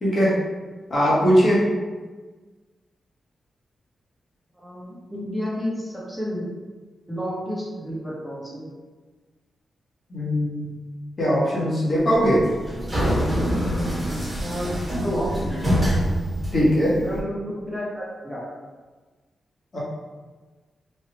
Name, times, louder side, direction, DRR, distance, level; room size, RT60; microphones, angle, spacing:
voice 1, 0.0-0.4 0.9-1.6 10.1-10.7 11.2-12.4 16.5-16.9 19.7-19.8, equal, 40° left, -6 dB, 1.0 m, -20 dB
voice 2, 4.6-6.5 7.1-8.7 14.4-15.9 16.5-18.4, equal, ahead, -7 dB, 0.9 m, -31 dB
sound 1, 12.2-17.2, equal, 20° right, 1.3 m, -25 dB
3.1 x 2.3 x 2.9 m, 1.3 s
cardioid pair, 95°, 0 cm